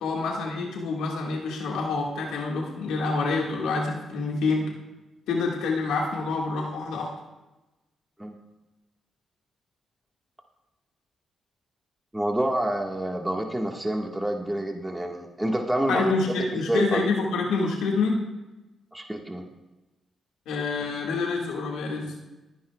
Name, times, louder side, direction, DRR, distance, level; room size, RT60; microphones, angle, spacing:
voice 1, 0.0-4.7 5.3-7.1 15.9-18.2 20.5-22.1, left 3 dB, 90° left, -1 dB, 1.8 m, -27 dB
voice 2, 12.1-16.1 16.5-17.0 18.9-19.4, right 1 dB, 10° right, 2 dB, 1.6 m, -28 dB
19.0 x 10.5 x 2.3 m, 1.1 s
supercardioid pair, 60°, 0 cm